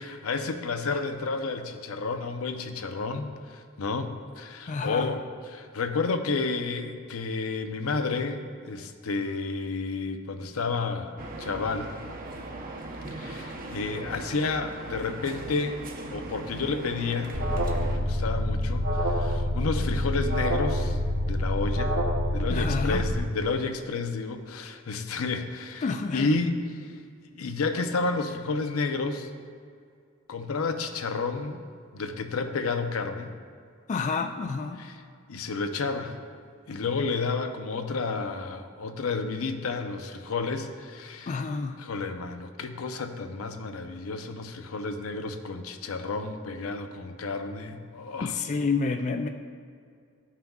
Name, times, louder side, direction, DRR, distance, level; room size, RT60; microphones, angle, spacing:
voice 1, 0.0-5.2 5.5-11.9 13.1-15.8 16.1-17.4 17.8-21.0 21.3-22.0 22.3-25.8 26.1-26.9 27.3-29.3 30.3-31.6 31.9-33.3 34.8-34.9 35.3-36.2 36.7-41.4 41.8-48.3, left 4 dB, 90° left, 6 dB, 0.6 m, -31 dB
voice 2, 4.7-5.1 22.5-23.1 25.8-26.3 33.9-34.8 41.3-41.8 48.2-49.3, left 4 dB, 35° left, 6 dB, 0.3 m, -29 dB
sound 1, 11.2-18.0, right 2 dB, 45° right, 0.8 m, -39 dB
Alarm, 17.3-23.2, left 1 dB, 90° right, 1.4 m, -27 dB
13.0 x 5.7 x 2.3 m, 2.3 s
head